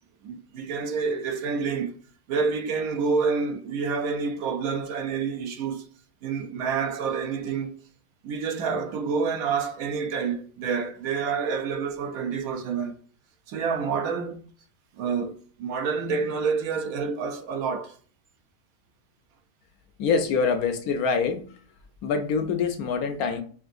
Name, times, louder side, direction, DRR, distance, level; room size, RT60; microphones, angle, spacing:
voice 1, 0.2-2.0 2.3-5.9 6.2-7.7 8.2-13.0 13.5-14.4 15.0-18.0, right 5 dB, 70° right, 1.0 m, -28 dB
voice 2, 20.0-21.4 22.0-23.4, left 5 dB, 70° left, 1.0 m, -25 dB
5.2 x 2.6 x 2.5 m
omnidirectional pair, 1.7 m